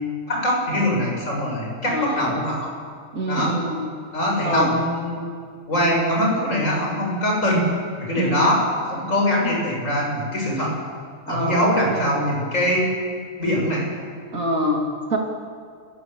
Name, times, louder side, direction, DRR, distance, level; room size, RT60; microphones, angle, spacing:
voice 1, 0.3-2.7 3.3-3.6 4.1-5.2 5.7-7.7 8.0-10.7 11.3-12.9 13.4-13.9, equal, 70° left, -1 dB, 7.2 m, -22 dB
voice 2, 1.9-2.4 3.1-3.9 4.4-4.7 8.1-8.5 11.3-12.1 14.3-15.2, right 1 dB, 80° right, 0 dB, 3.2 m, -25 dB
29.5 x 17.5 x 7.9 m, 2.1 s
omnidirectional pair, 1.4 m